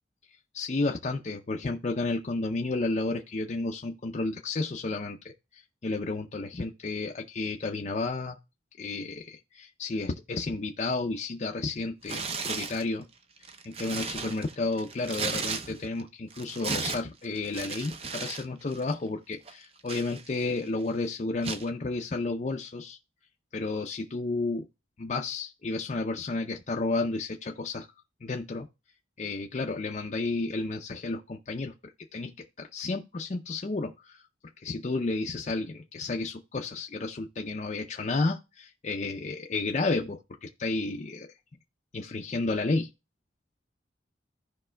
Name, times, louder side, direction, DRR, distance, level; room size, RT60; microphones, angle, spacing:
voice 1, 0.5-5.3 5.8-8.4 8.8-13.1 13.6-23.0 23.5-24.7 25.0-27.9 28.2-28.7 29.2-31.7 32.1-32.3 32.6-34.2 34.6-41.3 41.9-42.9, left 3 dB, 40° left, 0.5 m, -32 dB
Tearing, 12.0-12.8 13.4-16.0 16.3-18.5 18.7-18.9 19.5-20.6 21.4-21.7, right 5 dB, 30° right, 0.5 m, -35 dB
15.0 x 5.2 x 2.2 m
head